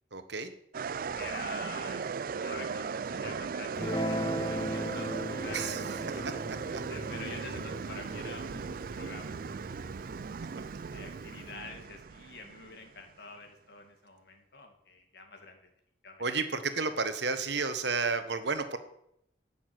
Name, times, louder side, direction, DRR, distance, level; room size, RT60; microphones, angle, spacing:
voice 1, 0.1-0.5 5.5-5.8 16.2-18.8, right 4 dB, 65° right, 10 dB, 1.3 m, -31 dB
sound 1, 0.7-13.0, right 5 dB, 50° right, 0.4 m, -37 dB
voice 2, 1.2-6.2 6.7-10.0 10.9-15.7 16.0-16.3 16.5-16.9, left 3 dB, 60° left, 4 dB, 2.1 m, -47 dB
Guitar, 3.8-10.4, equal, 20° left, 0.8 m, -38 dB
10.5 x 7.2 x 9.5 m, 0.76 s
head